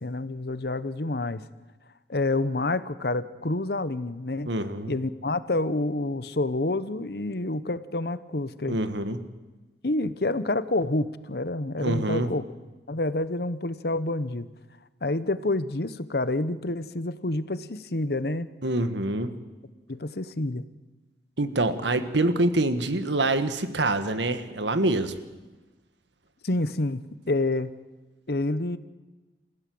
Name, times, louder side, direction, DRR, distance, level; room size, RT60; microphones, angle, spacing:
voice 1, 0.0-1.4 2.1-4.5 4.9-8.8 9.8-12.4 12.9-14.5 15.0-18.5 19.9-20.6 26.4-27.8 28.3-28.8, left 2 dB, 60° left, 14 dB, 1.0 m, -28 dB
voice 2, 4.5-4.9 8.7-9.3 11.8-12.3 18.6-19.4 21.4-25.1, right 2 dB, 85° right, 10 dB, 1.6 m, -25 dB
28.5 x 15.5 x 7.8 m, 1.2 s
head